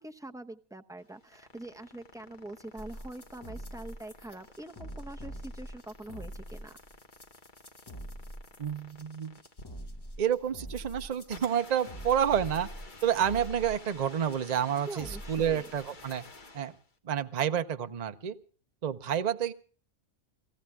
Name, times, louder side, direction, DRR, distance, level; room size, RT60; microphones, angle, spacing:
voice 1, 0.0-6.7 14.9-15.7, right 2 dB, 5° right, 6 dB, 0.6 m, -44 dB
sound 1, 1.0-16.9, left 3 dB, 40° left, 1.5 m, -52 dB
sound 2, 2.8-16.5, equal, 20° left, 1.0 m, -45 dB
voice 2, 8.6-9.4 10.2-12.7 13.0-16.2 16.5-16.7 17.0-18.4 18.8-19.5, right 9 dB, 40° right, 9 dB, 0.8 m, -29 dB
29.5 x 17.5 x 2.3 m, 0.40 s
omnidirectional pair, 1.4 m